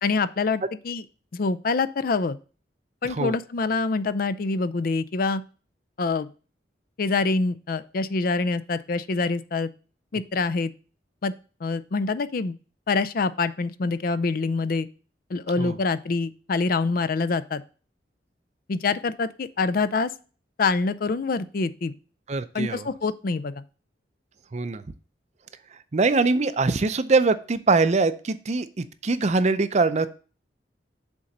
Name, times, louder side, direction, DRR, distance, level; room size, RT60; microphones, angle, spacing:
voice 1, 0.0-1.0 1.3-2.4 3.0-5.4 6.0-6.3 7.0-9.7 10.1-10.7 11.2-11.3 11.6-12.5 12.9-14.9 15.3-17.6 18.7-20.1 20.6-21.9 22.5-23.6, left 4 dB, 55° left, 14 dB, 0.5 m, -25 dB
voice 2, 3.0-3.3 15.6-15.7 22.3-22.9 24.5-24.8 25.9-30.1, right 3 dB, 40° right, 12 dB, 0.5 m, -23 dB
7.1 x 3.8 x 6.5 m, 0.37 s
head